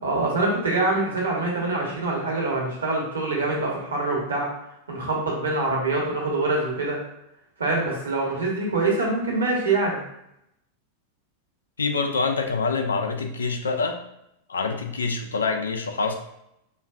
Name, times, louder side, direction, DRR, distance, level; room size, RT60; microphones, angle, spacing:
voice 1, 0.0-4.5 4.9-7.0 7.6-10.0, right 2 dB, 75° right, -2 dB, 1.2 m, -25 dB
voice 2, 11.8-14.0 14.5-16.1, left 4 dB, 70° left, 5 dB, 0.4 m, -26 dB
5.0 x 2.4 x 2.4 m, 0.81 s
figure-of-eight pair, 90°, 0 cm